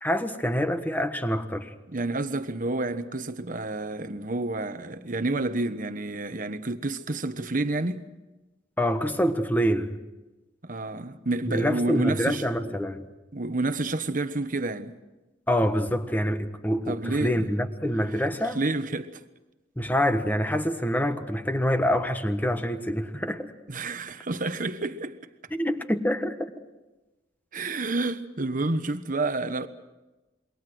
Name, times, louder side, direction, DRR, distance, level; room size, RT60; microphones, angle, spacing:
voice 1, 0.0-1.7 8.8-10.0 11.5-13.1 15.5-18.6 19.8-23.5 25.5-26.5, equal, 10° left, 1.4 m, -26 dB
voice 2, 1.9-8.0 10.6-12.7 13.3-15.0 16.9-17.5 18.5-19.2 23.7-25.2 27.5-29.7, right 2 dB, 45° right, 1.2 m, -29 dB
27.5 x 23.0 x 6.3 m
head